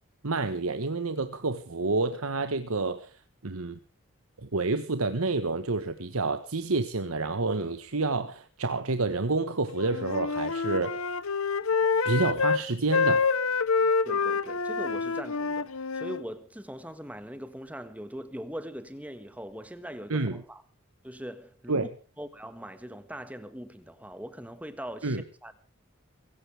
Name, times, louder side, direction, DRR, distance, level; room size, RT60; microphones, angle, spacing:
voice 1, 0.2-3.1 3.4-3.8 4.4-11.0 12.0-13.2 20.1-20.4 21.7-21.9 25.0-25.2, right 3 dB, 90° right, 1.3 m, -29 dB
Wind instrument woodwind instrument, 9.8-12.6 12.9-16.2, left 4 dB, 85° left, 0.9 m, -27 dB
voice 2, 14.0-20.6 21.0-21.9 22.2-25.6, equal, 5° right, 1.6 m, -41 dB
24.5 x 15.5 x 3.4 m
head